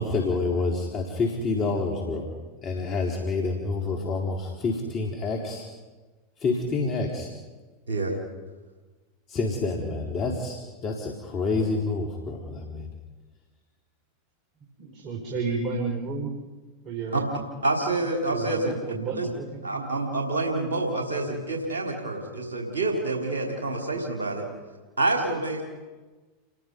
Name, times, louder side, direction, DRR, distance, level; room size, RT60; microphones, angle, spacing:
voice 1, 0.0-2.3 2.6-5.6 6.4-7.3 9.3-12.9, left 3 dB, 35° left, 0 dB, 4.2 m, -28 dB
voice 2, 14.8-16.3 16.8-17.5 18.3-19.6 21.1-21.3, right 4 dB, 50° right, 0 dB, 4.8 m, -32 dB
voice 3, 17.6-18.7 19.2-19.3 19.6-24.5 25.0-25.6, right 2 dB, 85° right, 0 dB, 3.8 m, -27 dB
29.5 x 21.5 x 5.5 m, 1.3 s
hypercardioid pair, 90°, 0 cm